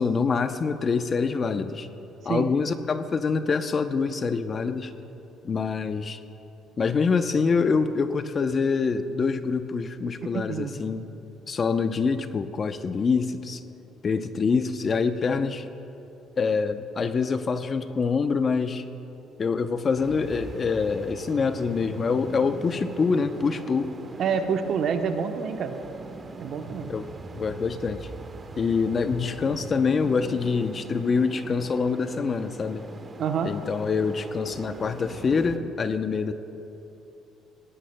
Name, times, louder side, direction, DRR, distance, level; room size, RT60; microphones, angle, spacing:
voice 1, 0.0-1.9 2.2-4.9 5.4-6.2 6.8-11.1 11.5-13.6 14.0-15.7 16.4-18.8 19.4-23.9 26.9-27.1 27.4-28.1 28.6-32.9 33.4-36.3, left 5 dB, 40° left, 10 dB, 0.7 m, -25 dB
voice 2, 10.3-10.8 24.2-25.8 26.4-26.9 33.2-33.5, right 6 dB, 60° right, 6 dB, 0.9 m, -27 dB
sound 1, 20.0-35.6, right 3 dB, 35° right, 1.0 m, -41 dB
20.0 x 18.0 x 2.2 m, 2.9 s
supercardioid pair, 85°, 0 cm